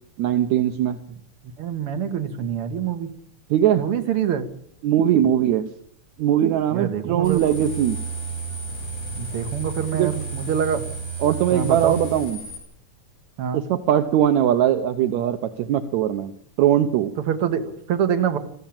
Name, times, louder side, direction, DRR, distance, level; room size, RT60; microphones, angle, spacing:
voice 1, 0.2-1.0 3.5-3.9 4.8-5.7 6.2-8.0 9.9-10.2 11.2-12.4 13.5-17.1, right 10 dB, 70° right, 8 dB, 2.2 m, -20 dB
voice 2, 1.6-3.1 3.8-4.5 6.7-7.5 9.1-10.8 11.5-12.0 13.4-13.6 17.3-18.4, right 8 dB, 50° right, 7 dB, 2.5 m, -25 dB
sound 1, 7.2-12.6, right 4 dB, 55° left, 7.6 m, -32 dB
22.5 x 15.0 x 8.9 m, 0.65 s
omnidirectional pair, 3.5 m